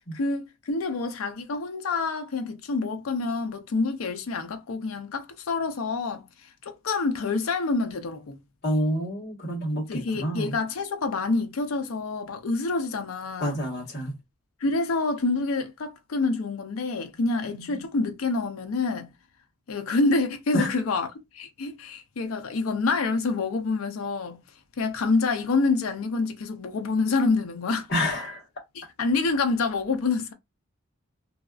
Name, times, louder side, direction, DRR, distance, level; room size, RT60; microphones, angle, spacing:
voice 1, 0.1-8.4 9.9-13.6 14.6-19.1 19.7-21.1 21.3-24.4 24.8-27.9 28.7-30.3, left 3 dB, 80° left, 0.5 m, -27 dB
voice 2, 8.6-10.5 13.4-14.2 17.5-17.8 20.5-20.7 27.9-28.4, equal, 50° left, 1.2 m, -28 dB
2.6 x 2.3 x 2.3 m
head